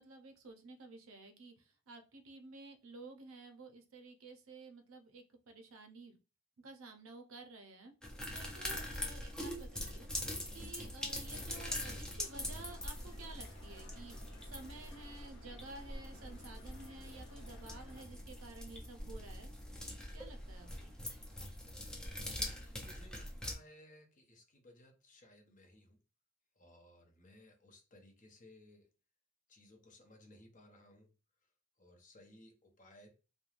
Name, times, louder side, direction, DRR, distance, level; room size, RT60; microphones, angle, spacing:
voice 1, 0.0-6.1 6.6-7.9 8.3-19.5 20.1-21.0, right 3 dB, 65° right, 5 dB, 0.5 m, -53 dB
sound 1, 8.0-23.5, left 1 dB, 5° left, 0.4 m, -43 dB
sound 2, 12.3-18.0, left 2 dB, 65° left, 0.7 m, -59 dB
voice 2, 22.3-26.0 26.6-28.9 29.5-31.1 31.8-33.2, left 1 dB, 35° left, 3 dB, 0.7 m, -61 dB
3.1 x 2.2 x 2.4 m, 0.32 s
head